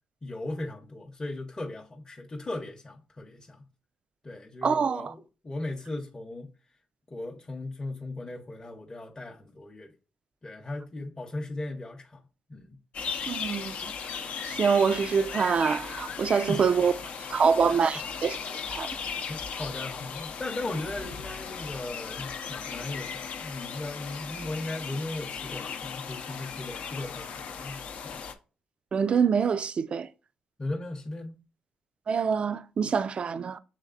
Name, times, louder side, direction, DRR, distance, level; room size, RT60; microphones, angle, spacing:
voice 1, 0.2-3.7 4.2-6.5 7.1-9.9 10.4-12.2 12.5-12.8 16.5-16.7 17.2-17.8 18.6-18.7 19.3-28.2 30.6-31.4, left 2 dB, 25° left, 0.7 m, -37 dB
voice 2, 4.6-5.1 13.3-13.7 14.4-16.9 17.3-18.4 18.7-18.9 28.9-30.1 32.1-33.6, right 6 dB, 45° right, 0.3 m, -25 dB
sound 1, 12.9-28.3, left 6 dB, 65° left, 0.5 m, -37 dB
6.4 x 3.2 x 2.4 m
cardioid pair, 75°, 3 cm